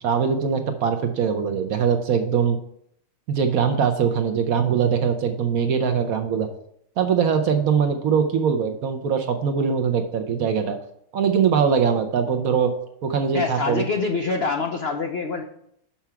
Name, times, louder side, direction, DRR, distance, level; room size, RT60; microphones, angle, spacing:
voice 1, 0.0-2.6 3.3-6.5 7.0-10.8 11.1-12.7 13.0-13.8, right 7 dB, 65° right, 7 dB, 0.9 m, -22 dB
voice 2, 13.3-15.4, left 4 dB, 80° left, 3 dB, 0.5 m, -25 dB
5.9 x 5.8 x 5.6 m, 0.72 s
omnidirectional pair, 1.9 m